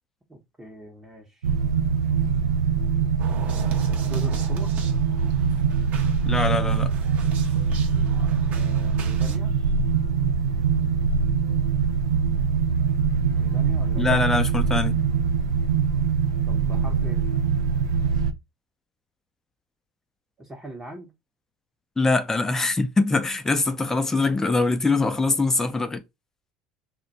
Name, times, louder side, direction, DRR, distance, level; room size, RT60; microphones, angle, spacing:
voice 1, 0.3-1.5 3.3-4.8 8.5-9.5 13.3-14.1 16.5-17.3 20.4-21.1, right 1 dB, 15° right, 0.9 m, -41 dB
sound 1, 1.4-18.3, right 6 dB, 85° right, 0.3 m, -23 dB
sound 2, 3.2-9.4, right 7 dB, 50° right, 0.7 m, -42 dB
voice 2, 6.3-6.9 14.0-15.0 22.0-26.0, left 3 dB, 15° left, 0.5 m, -23 dB
2.4 x 2.2 x 3.9 m
hypercardioid pair, 75°, 3 cm